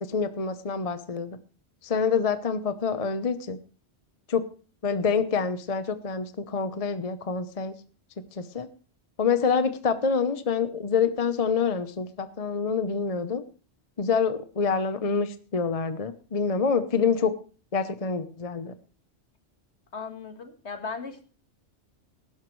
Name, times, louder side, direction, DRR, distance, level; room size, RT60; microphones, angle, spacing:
voice 1, 0.0-1.4 1.8-3.6 4.3-4.4 4.8-7.7 8.3-8.7 9.2-13.4 14.0-17.3 17.7-18.7, left 5 dB, 35° left, 11 dB, 0.9 m, -26 dB
voice 2, 19.9-21.2, left 5 dB, 70° left, 7 dB, 2.1 m, -37 dB
18.5 x 11.5 x 3.2 m, 0.37 s
omnidirectional pair, 1.2 m